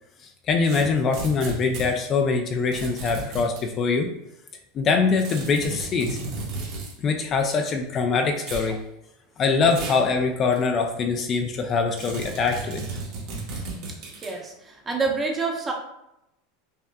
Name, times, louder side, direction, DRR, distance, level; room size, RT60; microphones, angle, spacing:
voice 1, 0.5-4.1 4.7-6.2 7.0-8.8 9.4-12.8, left 4 dB, 35° left, 4 dB, 0.4 m, -23 dB
sound 1, 0.6-1.9 2.7-3.6 5.2-7.0 8.4-8.7 9.7-10.1 10.5-10.6 12.0-14.4, right 3 dB, 60° right, 1.1 m, -34 dB
voice 2, 14.2-15.7, right 4 dB, 20° right, 1 dB, 0.9 m, -27 dB
5.3 x 2.4 x 2.2 m, 0.84 s
supercardioid pair, 125°, 0 cm